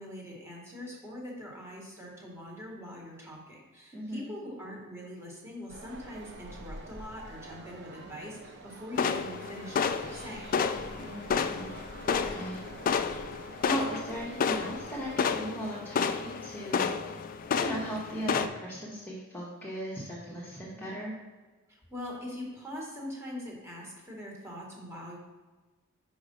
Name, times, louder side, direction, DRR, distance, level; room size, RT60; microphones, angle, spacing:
voice 1, 0.0-10.5 21.7-25.2, left 1 dB, 10° right, -2 dB, 1.6 m, -42 dB
voice 2, 3.9-4.3 11.0-11.7 12.1-12.6 13.6-17.2 17.6-21.2, equal, 10° left, -7 dB, 1.0 m, -38 dB
sound 1, 5.7-15.3, right 2 dB, 50° right, 0.7 m, -47 dB
sound 2, 8.9-18.5, left 6 dB, 40° left, 0.3 m, -31 dB
5.0 x 4.8 x 5.4 m, 1.3 s
head